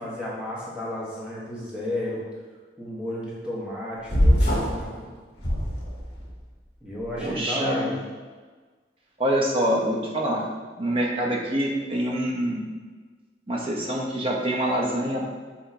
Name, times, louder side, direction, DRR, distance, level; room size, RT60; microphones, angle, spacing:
voice 1, 0.0-2.2 2.8-4.9 6.8-8.0, left 1 dB, 5° right, -7 dB, 1.0 m, -32 dB
sound 1, 4.1-4.8 5.4-6.3, equal, 65° left, 1.4 m, -22 dB
voice 2, 7.2-7.9 9.2-10.4 10.8-12.6 13.5-15.2, right 1 dB, 30° right, -2 dB, 0.6 m, -25 dB
6.0 x 2.8 x 2.7 m, 1.4 s
head